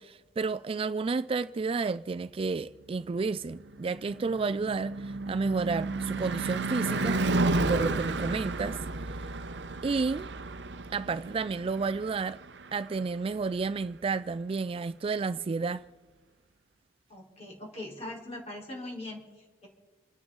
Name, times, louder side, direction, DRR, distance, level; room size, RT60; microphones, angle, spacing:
voice 1, 0.0-8.8 9.2-9.3 9.8-10.3 10.9-12.4 12.7-15.8, right 4 dB, 30° right, 0.3 m, -31 dB
Car passing by / Truck / Engine, 3.2-13.5, right 2 dB, 70° right, 0.7 m, -32 dB
voice 2, 17.1-19.7, left 1 dB, 35° left, 4.3 m, -41 dB
28.0 x 9.7 x 3.9 m
head